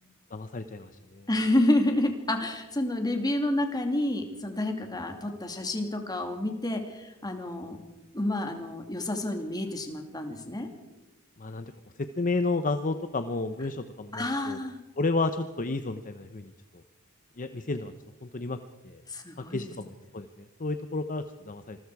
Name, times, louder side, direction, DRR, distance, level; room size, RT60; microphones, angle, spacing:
voice 1, 0.3-1.3 11.4-11.7 12.0-14.6 15.0-16.8 17.4-17.9 18.2-18.6 18.8-19.0 19.5-21.8, left 3 dB, 40° left, 9 dB, 0.8 m, -32 dB
voice 2, 1.3-7.8 8.1-10.7 14.1-14.8 19.1-19.6, left 1 dB, 20° left, 4 dB, 2.6 m, -29 dB
27.0 x 21.0 x 4.8 m, 1.0 s
head